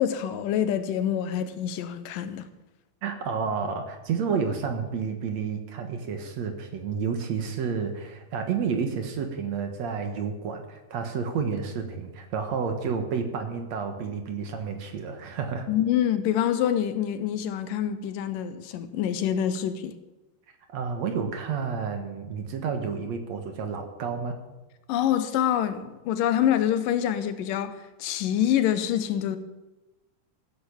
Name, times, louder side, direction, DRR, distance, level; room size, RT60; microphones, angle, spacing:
voice 1, 0.0-2.5 15.7-20.0 24.9-29.4, left 10 dB, 85° left, 2.6 m, -26 dB
voice 2, 3.0-15.7 20.7-24.4, right 6 dB, 60° right, 2.4 m, -30 dB
15.5 x 9.6 x 7.1 m
omnidirectional pair, 3.8 m